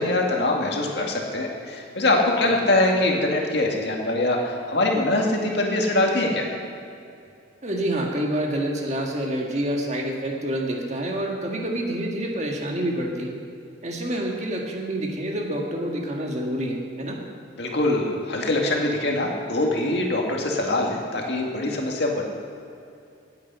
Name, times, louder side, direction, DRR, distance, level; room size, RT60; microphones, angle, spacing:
voice 1, 0.0-6.5 17.6-22.2, left 2 dB, 65° left, 0 dB, 2.1 m, -23 dB
voice 2, 7.6-13.3 13.8-17.2, right 1 dB, 35° right, 0 dB, 1.7 m, -27 dB
16.0 x 8.9 x 5.6 m, 2.6 s
head